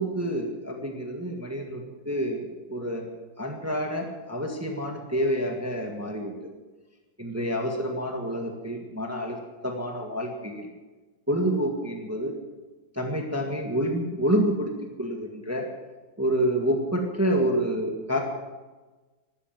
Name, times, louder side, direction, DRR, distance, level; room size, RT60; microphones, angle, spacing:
voice 1, 0.0-3.1 3.4-6.5 7.2-9.4 9.6-10.7 11.3-12.4 12.9-14.7 15.0-15.7 16.2-18.2, equal, 10° right, 2 dB, 1.7 m, -28 dB
14.5 x 12.5 x 7.5 m, 1.3 s
omnidirectional pair, 1.9 m